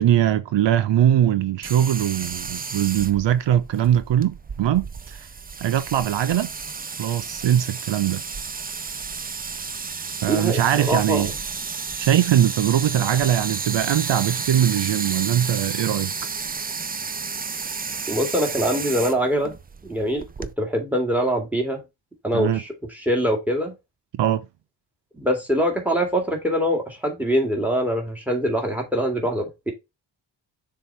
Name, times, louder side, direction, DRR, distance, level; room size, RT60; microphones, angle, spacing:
voice 1, 0.0-5.3 5.6-6.5 7.0-8.2 10.2-11.3 12.0-16.1 22.3-22.6 24.1-24.4, right 11 dB, 80° right, 0.6 m, -21 dB
sound 1, 1.6-20.5, right 5 dB, 20° right, 0.4 m, -32 dB
voice 2, 10.3-11.4 18.1-19.5 19.8-21.8 22.2-23.7 25.1-29.7, equal, 5° right, 2.3 m, -24 dB
6.8 x 3.8 x 4.5 m
wide cardioid pair, 150°, 43 cm